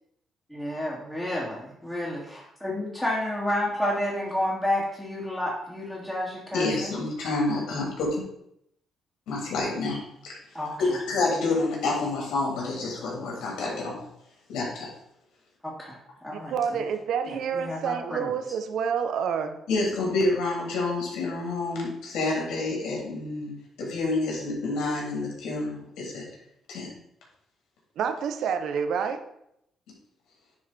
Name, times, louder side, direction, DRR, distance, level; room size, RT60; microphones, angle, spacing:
voice 1, 0.5-7.0 10.5-10.7 15.6-16.0 16.2-16.5 17.3-18.3, left 1 dB, 5° left, -8 dB, 2.9 m, -30 dB
voice 2, 6.5-8.2 9.3-10.4 10.8-14.0 14.5-14.9 19.7-23.5 23.8-26.3 26.7-26.9, left 2 dB, 85° left, -2 dB, 3.5 m, -28 dB
voice 3, 16.3-19.6 28.0-29.2, right 7 dB, 75° right, 8 dB, 0.9 m, -28 dB
9.8 x 4.8 x 4.3 m, 0.76 s
cardioid pair, 90°, 0 cm